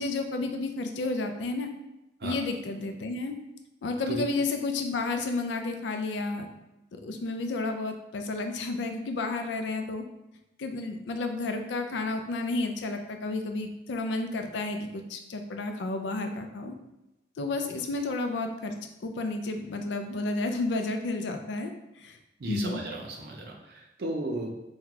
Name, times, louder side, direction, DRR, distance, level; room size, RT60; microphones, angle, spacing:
voice 1, 0.0-1.7 2.2-3.4 3.8-6.5 7.0-10.0 10.6-16.7 17.4-18.8 19.0-21.7 22.0-22.1 22.5-22.8, left 3 dB, 80° left, 5 dB, 0.4 m, -31 dB
voice 2, 22.4-24.5, right 2 dB, 60° right, 1 dB, 0.5 m, -34 dB
2.8 x 2.2 x 3.7 m, 0.94 s
head